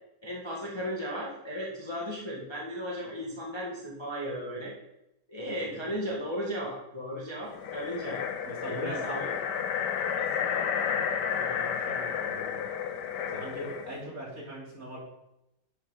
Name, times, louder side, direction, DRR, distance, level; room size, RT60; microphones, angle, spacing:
voice 1, 0.2-4.7 5.3-8.2 8.6-9.3, equal, 15° left, -4 dB, 1.6 m, -35 dB
voice 2, 5.5-6.0 8.4-9.2 10.2-12.6 13.2-15.0, right 1 dB, 40° right, -4 dB, 3.2 m, -42 dB
sound 1, 7.5-14.0, left 7 dB, 65° left, 1.2 m, -31 dB
10.5 x 9.0 x 3.8 m, 0.86 s
omnidirectional pair, 2.3 m